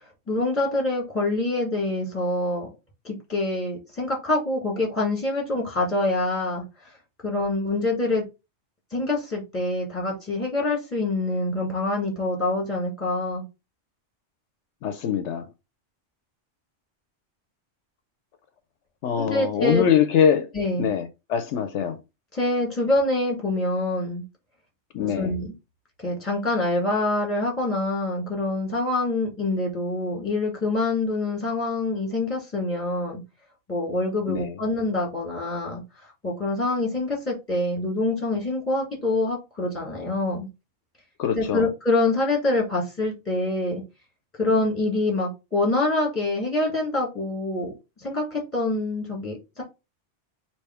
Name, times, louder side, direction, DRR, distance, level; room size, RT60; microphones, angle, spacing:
voice 1, 0.3-2.7 3.0-6.6 7.2-8.2 8.9-13.4 19.2-19.8 20.5-20.9 22.3-24.2 24.9-25.5 26.0-33.2 33.7-40.5 41.4-43.8 44.4-47.7 48.0-49.6, left 2 dB, 10° left, 1.8 m, -25 dB
voice 2, 14.8-15.5 19.0-20.5 20.8-22.0 24.9-25.3 34.3-34.6 41.2-41.7, left 8 dB, 75° left, 0.9 m, -23 dB
3.4 x 3.0 x 4.3 m
omnidirectional pair, 1.2 m